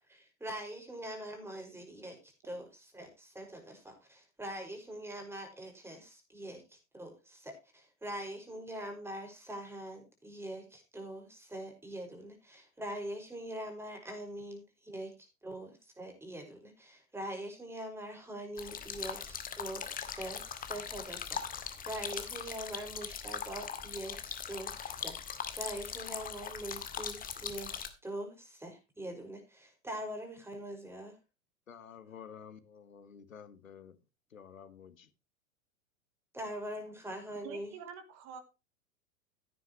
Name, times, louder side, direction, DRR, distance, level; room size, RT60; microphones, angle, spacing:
voice 1, 0.1-15.1 15.4-31.2 36.3-37.7, right 1 dB, 5° right, 5.5 m, -43 dB
sound 1, 18.6-27.9, left 7 dB, 20° left, 2.0 m, -40 dB
voice 2, 31.7-34.0 34.3-35.1, left 7 dB, 75° left, 1.6 m, -51 dB
voice 3, 37.4-38.4, right 7 dB, 40° right, 3.1 m, -46 dB
16.5 x 9.4 x 3.0 m
figure-of-eight pair, 95°, 40 cm